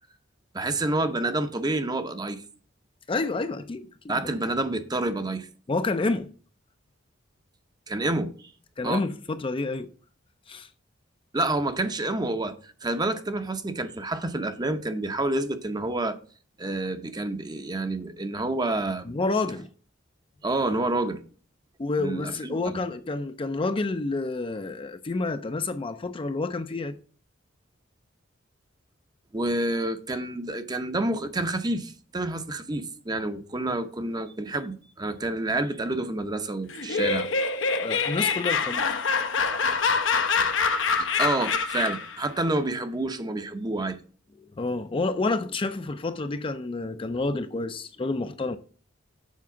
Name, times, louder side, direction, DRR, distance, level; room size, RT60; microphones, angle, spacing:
voice 1, 0.5-2.4 4.1-5.5 7.9-8.5 8.8-9.0 11.3-16.2 16.6-19.2 20.4-21.2 22.0-22.8 29.3-37.3 41.2-44.0, right 2 dB, 20° right, 0.7 m, -28 dB
voice 2, 3.1-4.2 5.7-6.3 8.8-9.9 10.5-10.7 19.1-19.7 21.8-27.0 37.8-38.8 44.6-48.6, left 3 dB, 30° left, 0.5 m, -29 dB
Laughter, 36.7-42.2, left 5 dB, 75° left, 0.9 m, -25 dB
7.3 x 4.7 x 5.8 m
head